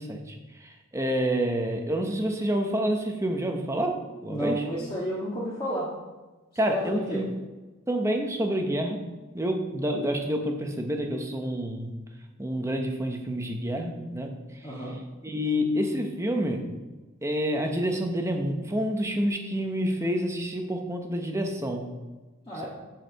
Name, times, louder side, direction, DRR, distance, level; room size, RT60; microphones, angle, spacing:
voice 1, 0.0-4.7 6.6-7.2 7.9-9.0 9.3-11.9 12.4-14.3 15.2-16.6 17.2-21.9, equal, 15° right, 3 dB, 0.9 m, -28 dB
voice 2, 4.3-5.9 6.7-7.2 14.6-14.9 22.5-22.7, equal, 25° left, -8 dB, 1.6 m, -31 dB
7.9 x 4.8 x 6.9 m, 1.2 s
head